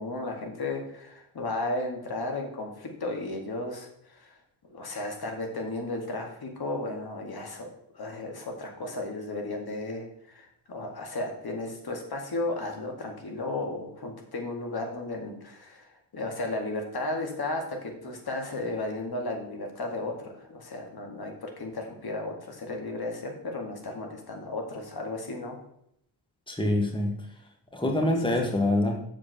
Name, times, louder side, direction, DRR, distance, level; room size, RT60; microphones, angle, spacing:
voice 1, 0.0-4.3 4.7-7.7 7.9-25.6, left 2 dB, 55° left, 2 dB, 2.2 m, -34 dB
voice 2, 26.5-27.3 27.7-29.0, left 1 dB, 10° left, 2 dB, 1.7 m, -25 dB
7.2 x 5.0 x 6.8 m, 0.74 s
cardioid pair, 60°, 46 cm